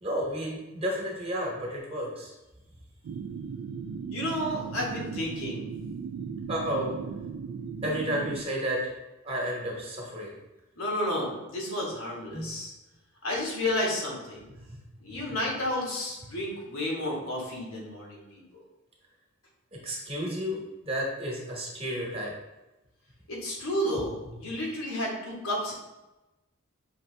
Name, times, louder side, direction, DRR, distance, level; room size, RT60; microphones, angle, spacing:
voice 1, 0.0-2.3 6.5-6.9 7.8-8.9 9.2-10.3 12.3-12.5 14.7-14.8 19.8-22.3, equal, 30° right, -2 dB, 1.0 m, -32 dB
sound 1, 3.0-8.4, right 6 dB, 85° right, 0.3 m, -37 dB
voice 2, 4.1-5.7 10.8-12.7 13.2-14.5 15.0-18.6 23.3-25.7, left 1 dB, 90° left, -3 dB, 1.3 m, -31 dB
5.5 x 2.6 x 3.2 m, 1.0 s
head